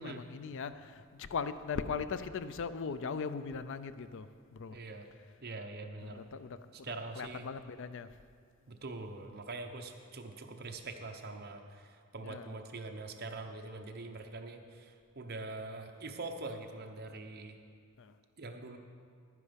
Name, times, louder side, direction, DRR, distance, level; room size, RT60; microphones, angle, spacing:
voice 1, 0.0-4.3 4.5-4.8 6.0-8.1 12.2-12.5 18.0-18.1, left 5 dB, 60° left, 12 dB, 0.4 m, -39 dB
voice 2, 4.7-5.1 5.4-6.2 6.7-7.5 8.7-17.6 18.4-18.8, right 3 dB, 45° right, 4 dB, 0.9 m, -44 dB
11.0 x 9.8 x 5.1 m, 2.2 s
head